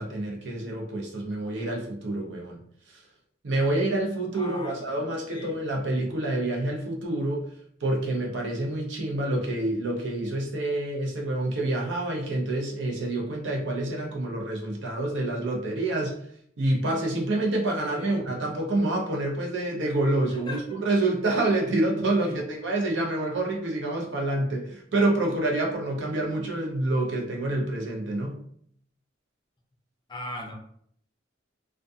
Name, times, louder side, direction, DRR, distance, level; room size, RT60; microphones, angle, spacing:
voice 1, 0.0-2.6 3.4-7.4 7.8-16.2 16.6-28.4, right 2 dB, 70° right, -1 dB, 0.6 m, -27 dB
voice 2, 4.3-5.6 18.0-18.2 20.3-20.6 22.2-22.4 30.1-30.5, left 1 dB, 25° left, 0 dB, 0.4 m, -39 dB
2.6 x 2.3 x 2.2 m, 0.65 s
head